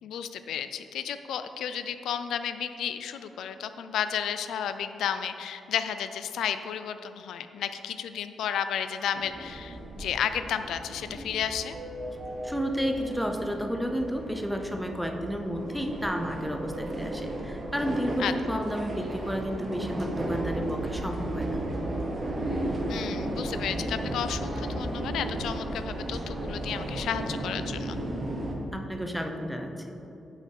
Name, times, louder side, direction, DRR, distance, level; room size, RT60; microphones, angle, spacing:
voice 1, 0.0-11.8 18.2-18.3 22.9-28.0, left 8 dB, 80° left, 10 dB, 0.3 m, -32 dB
sound 1, 9.1-28.6, right 1 dB, 30° right, 0.9 m, -34 dB
voice 2, 12.4-21.6 28.7-30.0, equal, ahead, 4 dB, 0.5 m, -31 dB
6.1 x 5.4 x 5.9 m, 2.9 s
wide cardioid pair, 165°, 0 cm